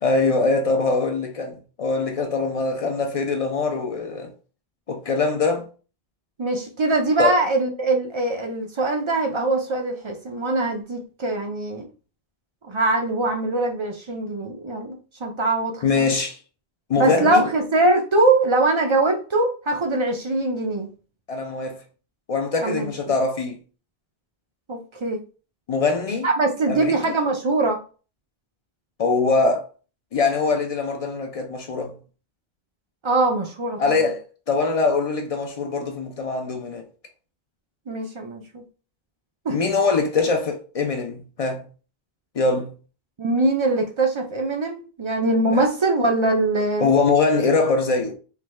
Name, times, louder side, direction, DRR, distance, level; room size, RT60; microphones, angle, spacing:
voice 1, 0.0-4.3 4.9-5.6 7.2-7.3 15.8-16.4 16.9-17.5 21.3-21.8 22.3-23.6 25.7-26.3 26.7-27.2 29.0-29.6 30.1-32.0 33.8-34.2 34.5-36.8 39.5-41.6 42.3-42.7 45.5-45.6 46.8-48.1, left 4 dB, 55° left, 0.4 m, -22 dB
voice 2, 6.4-11.9 12.7-16.1 17.0-20.9 22.6-22.9 24.7-25.2 26.2-27.8 33.0-33.8 37.9-38.6 39.5-39.6 43.2-46.9, right 2 dB, 50° right, 0.3 m, -22 dB
3.3 x 2.1 x 3.0 m
omnidirectional pair, 1.0 m